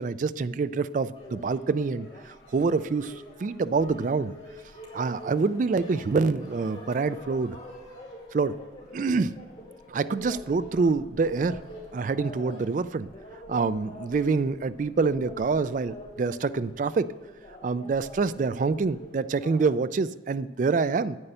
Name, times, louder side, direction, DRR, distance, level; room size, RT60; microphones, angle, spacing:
voice 1, 0.0-4.3 4.9-7.6 8.3-8.6 8.9-9.3 9.9-11.6 11.9-13.1 13.5-17.1 17.6-21.2, right 4 dB, 45° right, 15 dB, 0.3 m, -26 dB
sound 1, 1.1-19.7, equal, 35° left, 3.0 m, -45 dB
9.8 x 9.8 x 6.7 m, 1.3 s
head